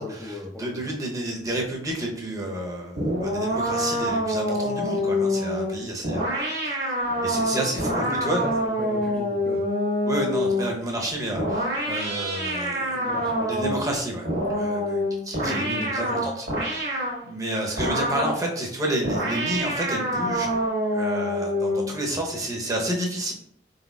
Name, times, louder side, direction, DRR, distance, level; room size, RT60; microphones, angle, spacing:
voice 1, 0.0-0.8 7.5-9.6 12.9-13.9 15.4-16.3, left 2 dB, 10° left, -3 dB, 0.5 m, -36 dB
voice 2, 0.6-6.3 6.6-6.8 7.2-8.4 10.0-13.1 13.5-16.5 16.8-20.6 20.9-23.3, right 1 dB, 20° right, 0 dB, 0.8 m, -30 dB
sound 1, 3.0-10.8 11.4-13.9 14.2-17.2 17.8-18.4 19.0-21.9, equal, 60° right, 1.4 m, -26 dB
4.2 x 4.0 x 2.3 m, 0.67 s
head